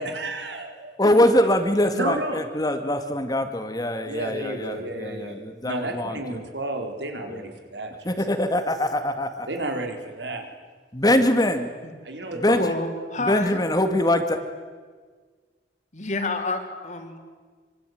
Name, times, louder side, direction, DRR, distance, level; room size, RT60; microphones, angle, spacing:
voice 1, 0.0-1.0 1.9-2.4 4.0-5.4 5.6-8.1 9.5-10.6 12.0-12.7, right 2 dB, 80° right, 4 dB, 4.2 m, -32 dB
voice 2, 1.0-6.4 7.3-7.5 8.0-9.5 10.9-11.7 12.3-12.7 13.2-14.4, left 1 dB, 20° left, 7 dB, 2.1 m, -23 dB
voice 3, 12.4-13.6 15.9-17.2, left 2 dB, 45° left, 4 dB, 3.9 m, -29 dB
25.5 x 25.0 x 9.5 m, 1.5 s
head